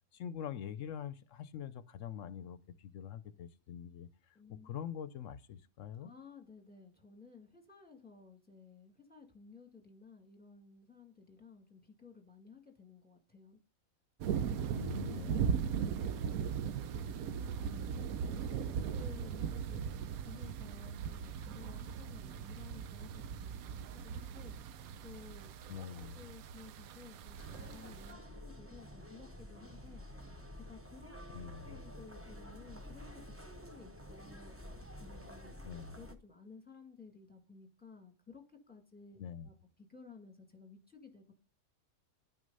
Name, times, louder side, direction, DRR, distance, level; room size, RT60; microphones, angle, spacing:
voice 1, 0.1-4.1 4.5-6.1 14.7-15.8 25.7-26.2 31.3-31.8 35.6-36.0 39.2-39.5, left 9 dB, 70° left, 0.9 m, -44 dB
voice 2, 4.3-4.8 6.0-13.6 14.3-14.7 15.8-30.3 30.7-34.6 35.0-35.6 35.9-41.3, left 4 dB, 5° left, 1.8 m, -56 dB
sound 1, 14.2-28.1, right 7 dB, 85° right, 1.1 m, -38 dB
sound 2, 27.3-36.1, equal, 10° right, 0.7 m, -50 dB
11.0 x 6.3 x 5.4 m
omnidirectional pair, 1.5 m